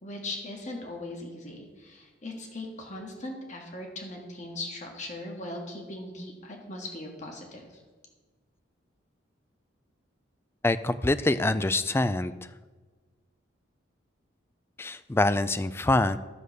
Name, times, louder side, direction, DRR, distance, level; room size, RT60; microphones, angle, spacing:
voice 1, 0.0-7.8, left 2 dB, 40° left, 1 dB, 1.7 m, -39 dB
voice 2, 10.6-12.4 14.8-16.2, left 2 dB, 10° left, 13 dB, 0.3 m, -25 dB
11.0 x 6.6 x 6.6 m, 1.4 s
head